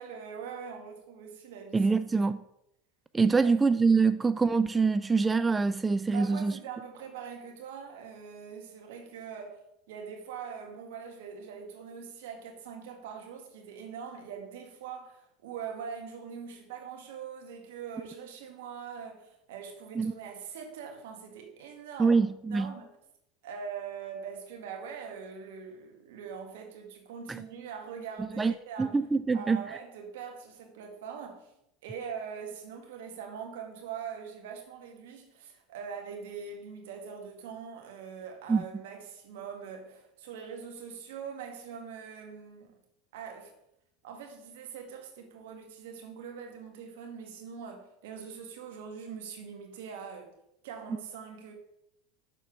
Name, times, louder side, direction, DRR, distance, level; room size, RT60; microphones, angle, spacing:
voice 1, 0.0-1.9 2.2-2.3 3.4-3.5 6.1-9.6 9.9-22.1 22.5-22.9 23.4-29.0 29.3-31.5 31.8-42.7 43.1-43.5 44.0-50.3 50.6-51.5, right 7 dB, 75° right, 1.7 m, -42 dB
voice 2, 1.7-2.4 3.1-6.5 20.0-20.1 22.0-22.7 28.4-28.5 28.8-29.6 38.5-38.6, right 4 dB, 15° right, 0.3 m, -25 dB
6.6 x 4.4 x 6.0 m
hypercardioid pair, 95°, 0 cm